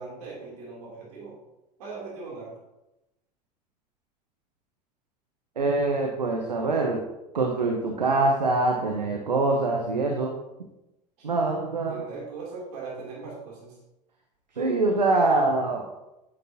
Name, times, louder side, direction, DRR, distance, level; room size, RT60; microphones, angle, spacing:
voice 1, 0.0-1.4 1.8-2.6 11.2-11.3 11.9-13.8, right 4 dB, 65° right, -4 dB, 3.0 m, -39 dB
voice 2, 5.6-7.0 7.3-10.3 11.2-12.0 14.5-15.8, right 3 dB, 85° right, 2 dB, 1.0 m, -24 dB
9.8 x 8.2 x 2.8 m, 0.94 s
figure-of-eight pair, 75°, 21 cm